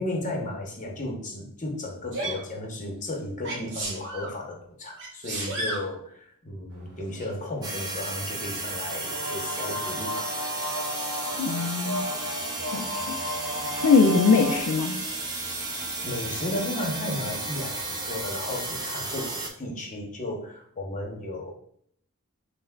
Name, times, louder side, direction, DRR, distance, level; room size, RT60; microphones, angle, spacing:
voice 1, 0.0-10.4 16.0-21.5, left 1 dB, 35° left, 0 dB, 0.7 m, -34 dB
Sneeze, 2.1-2.4 3.4-4.3 5.0-5.9 7.2-7.3, right 2 dB, 55° right, 1.0 m, -32 dB
sound 1, 6.7-14.6, left 1 dB, 85° right, 0.7 m, -34 dB
sound 2, 7.6-19.5, right 2 dB, 15° right, 0.4 m, -33 dB
voice 2, 11.4-12.1 12.7-13.1 13.8-15.0, left 4 dB, 75° left, 5 dB, 0.3 m, -21 dB
5.6 x 2.1 x 2.2 m, 0.65 s
head